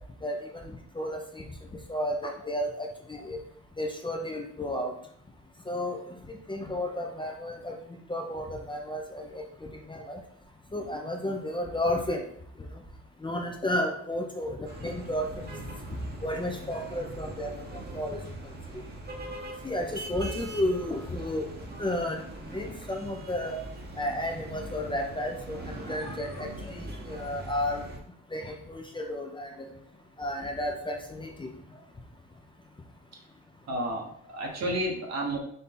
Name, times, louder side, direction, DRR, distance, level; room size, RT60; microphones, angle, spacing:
voice 1, 0.2-1.5 1.9-3.4 3.8-4.9 5.7-6.1 6.5-7.8 8.1-10.2 10.7-12.3 13.2-15.3 16.2-18.2 18.7-18.8 19.6-21.5 21.8-22.2 22.5-23.6 24.0-27.8 28.3-29.7 30.2-31.5, left 1 dB, 15° left, 3 dB, 0.5 m, -32 dB
sound 1, 14.6-28.0, right 1 dB, 35° right, 1.0 m, -41 dB
voice 2, 33.7-35.4, right 1 dB, 60° right, 0 dB, 1.3 m, -31 dB
4.1 x 2.8 x 3.6 m, 0.67 s
cardioid pair, 90°, 30 cm